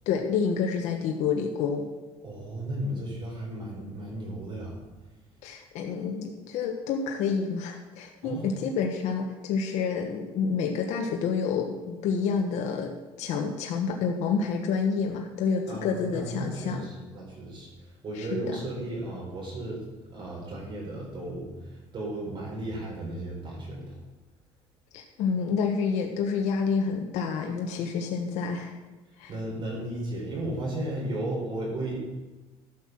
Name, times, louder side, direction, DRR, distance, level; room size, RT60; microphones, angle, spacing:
voice 1, 0.1-1.9 5.4-16.8 18.1-18.6 24.9-28.7 29.2-29.3, left 5 dB, 80° left, 2 dB, 1.3 m, -28 dB
voice 2, 2.2-4.8 8.2-8.6 15.7-19.8 20.1-24.0 29.3-32.0, right 1 dB, 45° right, -3 dB, 3.9 m, -35 dB
13.0 x 6.5 x 6.0 m, 1.2 s
cardioid pair, 130°, 12 cm